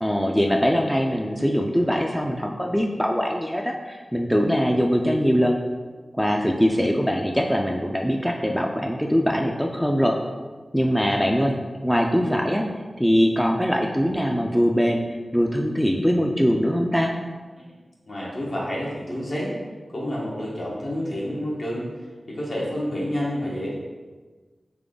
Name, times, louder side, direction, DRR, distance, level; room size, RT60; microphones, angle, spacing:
voice 1, 0.0-5.6 6.1-10.1 10.7-11.6 11.8-12.6 13.0-15.0 15.3-17.1, equal, ahead, 1 dB, 0.4 m, -22 dB
voice 2, 18.1-19.5 19.9-21.9 22.3-23.7, equal, 65° left, -6 dB, 1.3 m, -29 dB
3.6 x 3.3 x 3.8 m, 1.3 s
wide cardioid pair, 70°, 0 cm